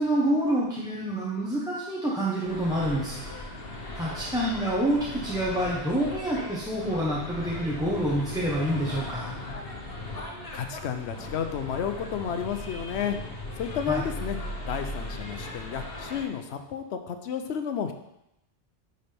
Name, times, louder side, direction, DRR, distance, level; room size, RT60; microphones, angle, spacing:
voice 1, 0.0-3.2 3.9-9.3 13.9-14.0, right 1 dB, 5° right, -6 dB, 1.0 m, -27 dB
sound 1, 2.5-16.2, left 2 dB, 65° left, 1.4 m, -38 dB
voice 2, 10.5-13.2 13.6-14.4 14.7-17.9, left 8 dB, 80° left, 7 dB, 0.9 m, -31 dB
9.8 x 4.0 x 3.4 m, 0.84 s
omnidirectional pair, 1.1 m